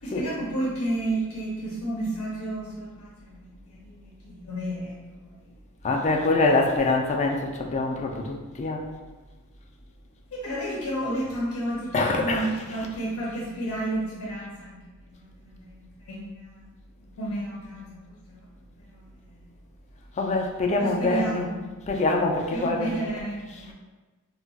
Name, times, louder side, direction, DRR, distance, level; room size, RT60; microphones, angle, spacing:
voice 1, 0.0-5.3 10.3-14.8 15.1-16.6 17.0-18.0 18.3-18.4 18.9-19.0 19.3-19.4 20.8-21.6 22.5-23.7, right 1 dB, 80° left, -5 dB, 0.6 m, -32 dB
voice 2, 5.8-8.8 11.9-12.9 20.2-21.5 21.9-22.9 23.5-23.7, left 2 dB, 30° left, 1 dB, 0.3 m, -25 dB
2.3 x 2.2 x 3.8 m, 1.3 s
head